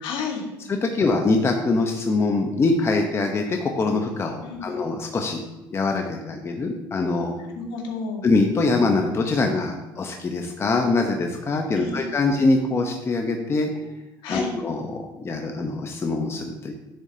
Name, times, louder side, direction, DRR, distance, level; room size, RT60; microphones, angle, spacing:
voice 1, 0.0-0.5 4.4-4.8 7.5-8.2 11.8-12.1 14.2-14.5, left 4 dB, 70° left, 1 dB, 2.0 m, -31 dB
voice 2, 0.7-5.4 5.7-7.3 8.2-13.9 14.3-16.7, left 3 dB, 30° left, 3 dB, 1.0 m, -23 dB
10.5 x 7.1 x 2.9 m, 1.0 s
supercardioid pair, 95°, 8 cm